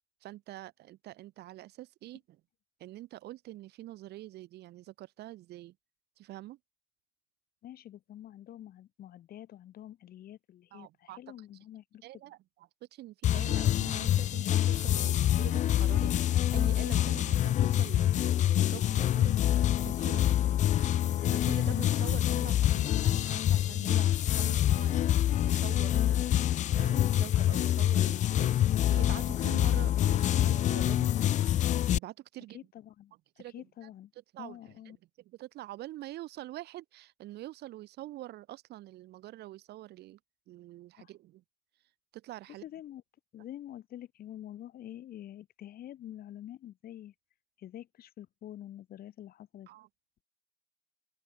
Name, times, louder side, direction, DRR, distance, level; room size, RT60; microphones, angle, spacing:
voice 1, 0.2-2.4 2.8-5.8 6.2-6.6 10.7-11.3 12.0-19.4 19.8-20.2 21.3-31.1 31.9-32.6 33.4-33.7 34.3-35.0 35.2-40.2 40.5-41.4 42.1-42.6 49.7-49.9, right 15 dB, 75° right, 4.4 m, -46 dB
voice 2, 7.6-12.0 32.5-34.1 34.4-35.0 41.0-41.1 42.6-43.0 43.3-47.1 47.6-49.7, left 12 dB, 60° left, 5.3 m, -47 dB
sound 1, 13.2-32.0, left 12 dB, 45° left, 0.4 m, -26 dB
open air
cardioid pair, 110°, 17 cm